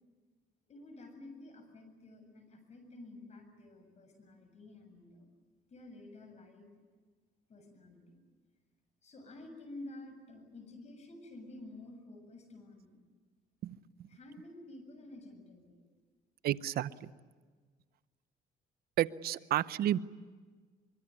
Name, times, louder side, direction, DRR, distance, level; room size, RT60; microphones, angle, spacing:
voice 1, 0.7-5.3 5.7-6.7 7.5-8.2 9.0-13.0 14.1-15.8, left 2 dB, 40° left, 7 dB, 7.4 m, -51 dB
voice 2, 13.6-14.1 16.4-17.1 19.0-20.0, right 13 dB, 65° right, 15 dB, 0.8 m, -32 dB
24.5 x 23.5 x 9.7 m, 1.5 s
cardioid pair, 110°, 17 cm